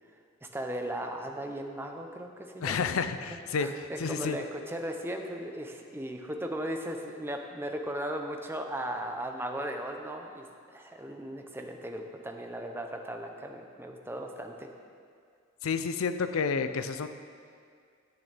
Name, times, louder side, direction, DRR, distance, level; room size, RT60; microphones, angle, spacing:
voice 1, 0.4-2.9 3.6-10.5 10.7-14.7, right 1 dB, 10° right, 3 dB, 0.6 m, -37 dB
voice 2, 2.6-3.7 4.0-4.4 15.6-17.1, left 5 dB, 80° left, 10 dB, 0.5 m, -30 dB
10.5 x 8.9 x 3.4 m, 2.2 s
head